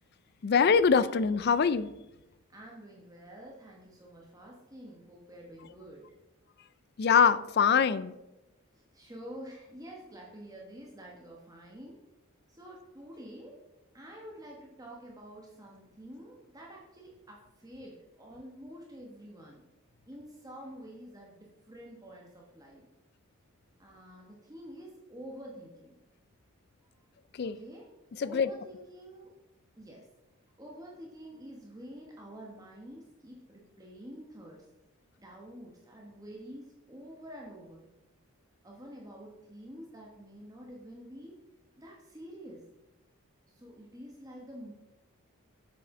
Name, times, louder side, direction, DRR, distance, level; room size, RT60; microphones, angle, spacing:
voice 1, 0.4-1.9 7.0-8.1 27.4-27.6 28.2-28.5, left 6 dB, 45° left, 16 dB, 0.3 m, -23 dB
voice 2, 2.5-6.0 8.9-12.0 12.5-13.6 13.9-19.6 20.1-22.9 23.8-25.9 27.4-27.9 28.2-29.3 29.7-30.0 30.6-34.6 35.2-37.9 38.6-41.3 41.8-42.6 43.5-44.7, equal, 15° right, -2 dB, 1.1 m, -48 dB
7.9 x 7.7 x 3.7 m, 0.97 s
head